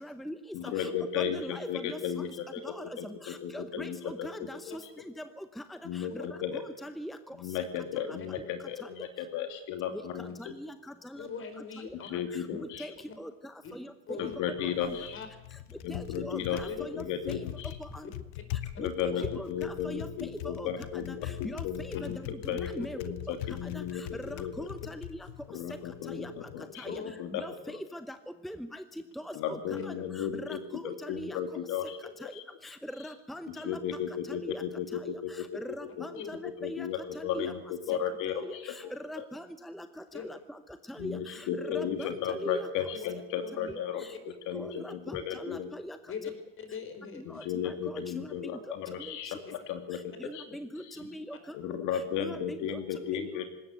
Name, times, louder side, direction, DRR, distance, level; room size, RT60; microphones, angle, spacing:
voice 1, 0.0-0.3 0.6-2.0 2.6-2.8 3.2-4.8 6.1-6.2 6.8-7.2 8.0-8.2 10.4-10.7 11.1-11.2 12.6-12.9 13.2-13.3 13.8-14.2 14.8-14.9 15.9-17.4 17.9-18.0 18.8-18.9 19.4-20.1 20.6-20.7 21.4-21.9 22.5-23.0 23.3-23.4 23.7-23.8 24.2-25.1 26.1-26.3 26.8-27.0 27.3-28.2 28.4-28.8 29.2-29.9 30.3-31.4 32.2-32.3 32.6-33.8 34.3-34.6 35.6-36.9 37.1-37.5 38.3-39.9 40.2-40.4 40.9-42.7 44.5-46.0 47.3-48.3 49.3-49.4 50.2-51.4 52.2-52.6 53.1-53.3, equal, ahead, 10 dB, 0.9 m, -41 dB
voice 2, 0.5-2.6 3.0-4.3 4.7-4.8 5.8-6.6 7.3-10.5 12.0-12.9 14.2-15.2 15.8-17.8 18.8-22.2 22.5-24.7 25.5-27.8 29.3-30.6 30.8-32.4 33.5-35.6 36.0-36.1 36.4-38.8 39.2-39.3 41.0-44.0 44.5-45.7 47.3-50.4 50.8-51.0 51.5-53.5, left 8 dB, 60° left, 7 dB, 2.7 m, -35 dB
voice 3, 11.2-12.1 13.6-13.7 14.1-14.4 15.1-15.3 16.6-16.8 19.1-19.4 26.8-27.1 36.1-36.3 37.9-38.0 40.1-40.2 42.9-43.1 43.4-43.8 46.1-47.2 51.3-51.4, left 6 dB, 35° left, 8 dB, 5.0 m, -41 dB
Typing, 14.2-26.6, left 13 dB, 80° left, 1.4 m, -42 dB
20.0 x 17.5 x 8.1 m, 1.0 s
supercardioid pair, 120°, 34 cm